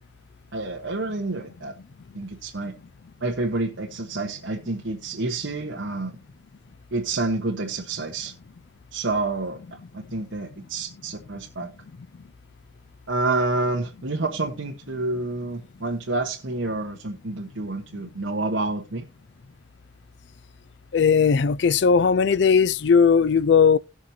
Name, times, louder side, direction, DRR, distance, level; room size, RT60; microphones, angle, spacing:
voice 1, 0.5-1.7 2.1-2.7 3.2-6.2 6.9-8.3 8.9-9.6 9.9-11.7 13.1-19.0, right 2 dB, 80° right, 1.2 m, -28 dB
voice 2, 20.9-23.8, left 6 dB, 65° left, 0.4 m, -18 dB
18.0 x 6.2 x 2.7 m
head